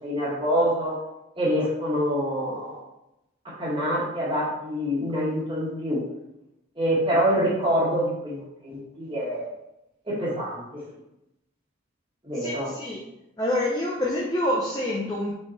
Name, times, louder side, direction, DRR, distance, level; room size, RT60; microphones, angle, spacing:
voice 1, 0.0-0.9 1.3-2.8 3.4-6.0 6.7-9.5 10.1-10.8 12.2-12.7, equal, 25° right, -7 dB, 1.8 m, -26 dB
voice 2, 12.4-13.0 13.4-15.3, left 1 dB, 20° left, -4 dB, 0.8 m, -27 dB
5.7 x 4.3 x 4.2 m, 0.88 s
head